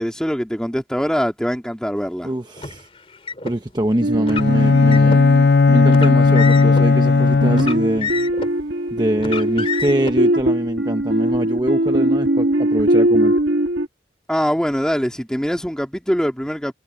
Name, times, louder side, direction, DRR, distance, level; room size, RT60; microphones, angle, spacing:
voice 1, 0.0-2.3 14.3-16.7, equal, 5° left, 2.3 m, -23 dB
voice 2, 2.2-2.9 3.4-5.2 5.7-8.1 8.9-13.3, right 1 dB, 25° right, 1.0 m, -23 dB
Car, 2.6-3.6 4.2-5.2 5.9-6.9 7.5-8.6 9.2-10.1, left 5 dB, 30° left, 3.1 m, -29 dB
sound 1, 4.0-13.9, right 1 dB, 75° right, 1.8 m, -21 dB
Bowed string instrument, 4.3-8.1, left 4 dB, 60° left, 0.4 m, -15 dB
head